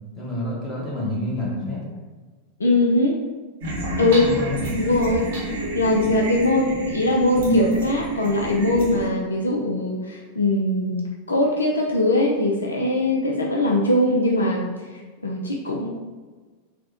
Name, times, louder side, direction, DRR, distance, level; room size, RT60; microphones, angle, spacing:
voice 1, 0.1-1.8 4.2-4.5, left 1 dB, 20° left, -4 dB, 1.1 m, -28 dB
voice 2, 2.6-3.2 4.0-4.3 4.8-5.3 5.7-15.9, left 1 dB, 75° left, -1 dB, 0.3 m, -21 dB
sound 1, 3.6-9.1, right 2 dB, 60° right, 0.8 m, -27 dB
4.0 x 2.1 x 2.8 m, 1.3 s
figure-of-eight pair, 90°, 0 cm